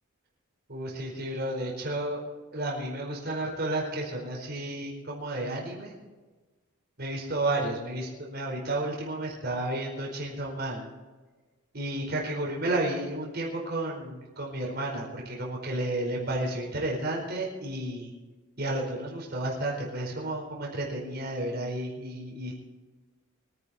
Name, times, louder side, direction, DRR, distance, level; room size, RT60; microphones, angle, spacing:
voice 1, 0.7-2.2 2.5-6.0 7.0-10.9 11.7-18.1 18.6-22.5, right 1 dB, 50° right, -2 dB, 4.6 m, -32 dB
24.0 x 10.0 x 4.3 m, 1.3 s
head